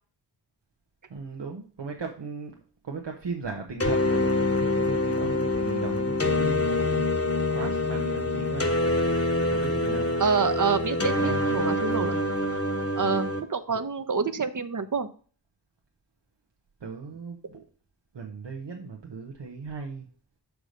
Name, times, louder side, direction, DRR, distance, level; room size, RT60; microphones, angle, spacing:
voice 1, 1.1-7.1 7.5-8.7 9.3-10.1 11.1-11.7 13.0-13.2 16.8-17.7 18.1-20.1, right 4 dB, 90° right, 1 dB, 1.0 m, -37 dB
sound 1, 3.8-13.4, left 2 dB, 35° left, 1.1 m, -26 dB
voice 2, 10.2-12.2 13.0-15.1, right 5 dB, 50° right, 10 dB, 0.8 m, -27 dB
6.6 x 4.7 x 5.1 m, 0.40 s
wide cardioid pair, 70°, 41 cm